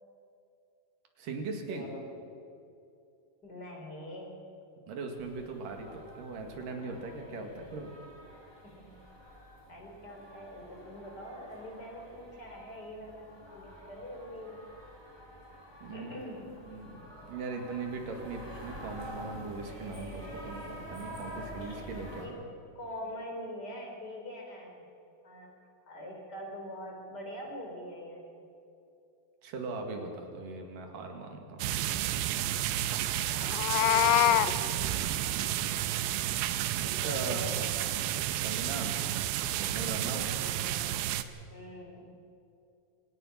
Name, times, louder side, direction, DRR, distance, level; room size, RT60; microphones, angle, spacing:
voice 1, 1.2-1.9 4.9-7.9 15.8-16.1 16.6-22.3 29.4-31.6 36.7-37.6 38.4-38.9 39.6-40.3, right 3 dB, 60° right, 3 dB, 3.7 m, -39 dB
voice 2, 1.7-2.0 3.4-4.4 8.6-9.0 9.7-14.6 15.9-16.6 22.2-22.4 22.8-24.9 25.2-25.5 25.9-28.5 33.3-33.5 33.8-35.1 36.7-37.8 40.2-40.9 41.5-42.1, equal, 25° left, 1 dB, 4.2 m, -44 dB
sound 1, 5.2-22.2, equal, 5° right, 4.0 m, -48 dB
sound 2, 31.6-41.2, right 12 dB, 80° right, 2.6 m, -31 dB
Meow, 33.4-34.5, left 14 dB, 80° left, 2.1 m, -24 dB
26.5 x 17.5 x 5.9 m, 2.6 s
omnidirectional pair, 4.4 m